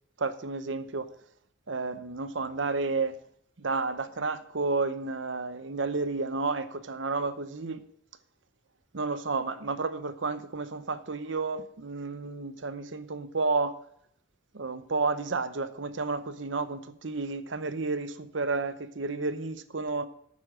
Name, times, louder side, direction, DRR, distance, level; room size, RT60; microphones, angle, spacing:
voice 1, 0.2-1.1 1.7-3.2 3.6-7.8 8.9-13.7 14.5-20.1, right 3 dB, 65° right, 0.8 m, -31 dB
9.4 x 8.6 x 6.2 m
head